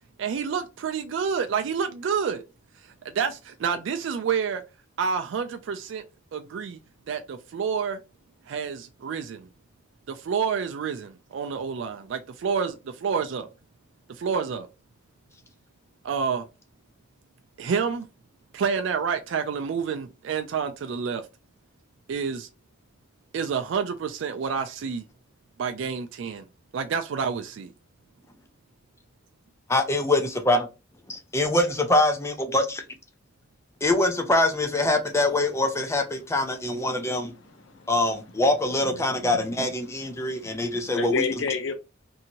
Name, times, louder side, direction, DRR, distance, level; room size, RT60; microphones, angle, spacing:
voice 1, 0.2-2.4 3.1-4.6 5.0-6.0 6.3-6.8 7.1-8.0 8.5-9.5 10.1-13.5 14.1-14.7 16.0-16.5 17.6-18.1 18.5-21.3 22.1-22.5 23.3-25.1 25.6-26.4 26.7-27.7, right 6 dB, 70° right, 0.3 m, -28 dB
voice 2, 29.7-30.7 31.1-32.8 33.8-37.3 37.9-41.1, left 2 dB, 15° left, 0.4 m, -24 dB
voice 3, 37.5-37.9 39.2-39.4 40.2-40.7 40.9-41.7, left 4 dB, 70° left, 0.7 m, -30 dB
2.7 x 2.7 x 2.6 m
head